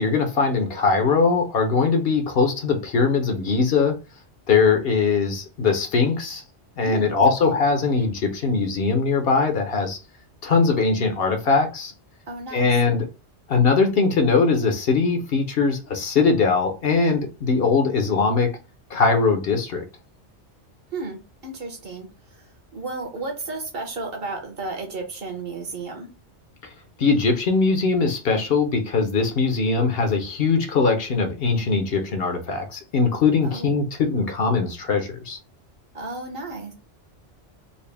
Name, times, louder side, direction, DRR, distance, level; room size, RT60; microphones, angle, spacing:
voice 1, 0.0-4.0 4.5-6.4 6.8-10.0 10.4-11.9 12.5-13.1 13.5-18.5 18.9-19.8 27.0-35.4, left 4 dB, 60° left, 0.8 m, -21 dB
voice 2, 6.8-7.5 12.3-12.7 20.9-26.1 33.4-33.7 35.9-36.7, right 3 dB, 55° right, 1.1 m, -33 dB
4.0 x 2.1 x 3.3 m
omnidirectional pair, 1.2 m